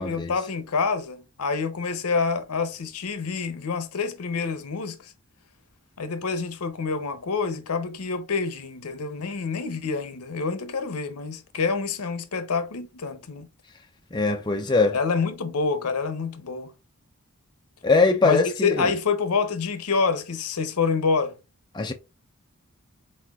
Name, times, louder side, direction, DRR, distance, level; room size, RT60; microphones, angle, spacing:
voice 1, 0.0-5.1 6.0-13.5 14.9-16.7 18.2-21.4, left 4 dB, 80° left, 0.7 m, -27 dB
voice 2, 14.1-15.0 17.8-18.9 21.7-21.9, left 3 dB, 20° left, 0.5 m, -21 dB
4.3 x 4.2 x 2.4 m
head